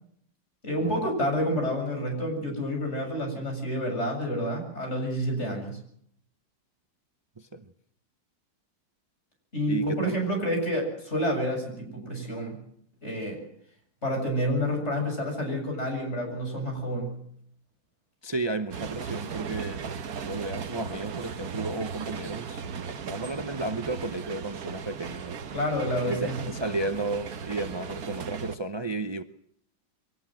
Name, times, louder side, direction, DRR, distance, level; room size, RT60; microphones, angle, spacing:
voice 1, 0.6-5.8 9.5-12.6 13.0-13.4 14.0-17.2 25.5-26.5, equal, 35° left, 7.7 m, -29 dB
voice 2, 9.7-10.2 18.2-19.8 20.2-25.4 26.1-29.2, right 2 dB, 40° right, 0.3 m, -33 dB
sound 1, 18.7-28.6, right 6 dB, 55° right, 1.5 m, -37 dB
23.0 x 19.0 x 7.6 m
omnidirectional pair, 2.0 m